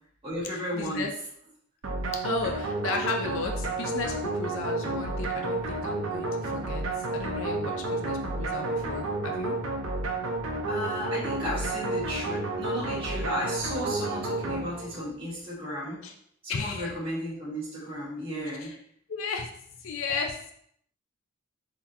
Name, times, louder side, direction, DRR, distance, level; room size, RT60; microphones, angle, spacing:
voice 1, 0.2-1.1 10.7-16.0 16.4-18.7, equal, 25° right, -8 dB, 1.3 m, -34 dB
voice 2, 0.7-1.1 2.1-6.8 7.1-9.6 16.0-16.1 16.5-16.9 18.6-18.7 19.1-19.5 19.8-20.5, left 4 dB, 65° left, 3 dB, 0.4 m, -34 dB
sound 1, 1.8-15.1, right 2 dB, 65° right, 0.7 m, -31 dB
3.8 x 2.9 x 2.7 m, 0.68 s
head